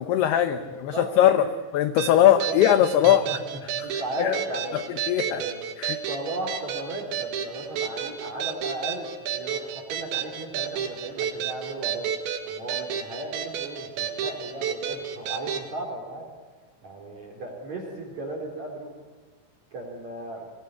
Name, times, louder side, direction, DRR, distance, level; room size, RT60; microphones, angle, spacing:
voice 1, 0.0-1.5 1.7-3.3 3.8-3.9 4.2-4.4 4.7-5.4 5.8-6.0, left 11 dB, 75° left, 10 dB, 2.5 m, -20 dB
voice 2, 0.6-1.1 1.4-1.5 2.2-2.6 3.0-4.8 5.2-5.6 6.1-12.1 12.4-16.3 16.8-18.9 19.7-20.5, right 1 dB, 40° right, -2 dB, 4.4 m, -36 dB
sound 1, 2.0-15.7, right 8 dB, 70° right, 4.1 m, -31 dB
23.5 x 20.5 x 9.6 m, 1.4 s
omnidirectional pair, 5.6 m